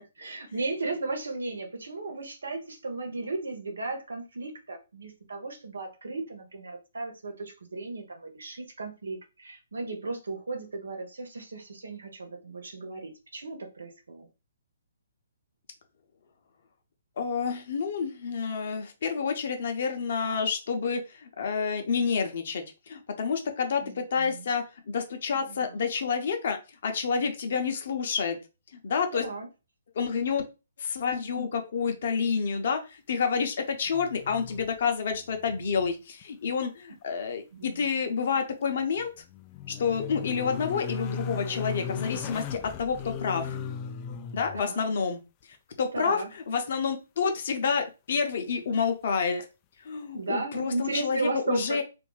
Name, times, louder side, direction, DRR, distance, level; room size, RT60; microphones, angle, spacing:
voice 1, 0.2-14.3 23.8-24.5 25.5-25.8 29.1-29.5 37.5-37.7 44.5-44.8 45.9-46.3 50.1-51.8, right 3 dB, 70° right, 3 dB, 1.1 m, -35 dB
voice 2, 17.2-28.4 28.7-29.3 29.9-30.4 30.8-39.1 39.7-43.6 44.3-45.2 45.8-49.5 49.8-51.8, left 6 dB, 55° left, 5 dB, 0.8 m, -29 dB
sound 1, 33.9-34.9 35.1-35.9 36.2-36.3 38.8-44.6 47.5-47.6, left 6 dB, 25° left, 0.4 m, -37 dB
2.6 x 2.5 x 3.9 m, 0.29 s
figure-of-eight pair, 130°, 0 cm